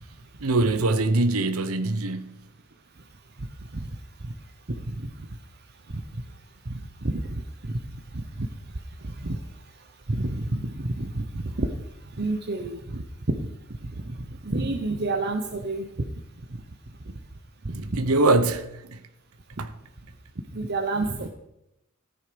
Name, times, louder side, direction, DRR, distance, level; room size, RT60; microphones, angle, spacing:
voice 1, 0.4-2.4 17.8-19.0 19.6-19.7, right 2 dB, 90° right, 0.9 m, -23 dB
voice 2, 10.1-11.2 11.6-11.7 12.2-13.4 14.4-15.9 17.7-18.0 20.5-21.3, right 2 dB, 50° right, 1.0 m, -28 dB
15.0 x 10.0 x 5.2 m
head